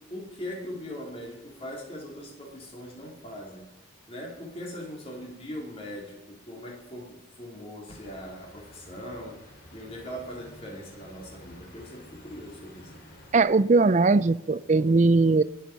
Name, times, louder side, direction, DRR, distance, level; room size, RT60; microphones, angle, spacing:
voice 1, 0.0-3.7 4.1-9.4 9.7-13.0, equal, 30° left, -2 dB, 3.8 m, -40 dB
sound 1, 7.9-13.4, left 1 dB, 45° left, 4.2 m, -51 dB
voice 2, 13.3-15.4, right 3 dB, 35° right, 17 dB, 0.4 m, -20 dB
19.5 x 7.7 x 5.3 m, 0.90 s
head